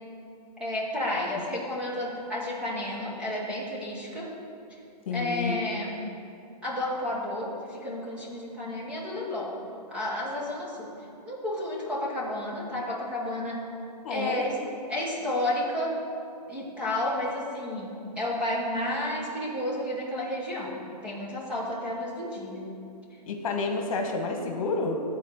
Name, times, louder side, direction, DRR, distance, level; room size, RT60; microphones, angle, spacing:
voice 1, 0.6-4.3 5.1-6.0 6.6-9.5 9.9-10.9 11.2-13.6 14.1-14.5 14.9-16.0 16.5-22.7, left 1 dB, 5° right, -6 dB, 1.2 m, -31 dB
voice 2, 5.1-5.6 14.0-14.4 23.3-25.0, left 3 dB, 55° left, 3 dB, 1.4 m, -29 dB
12.5 x 4.5 x 7.9 m, 2.5 s
hypercardioid pair, 165°, 21 cm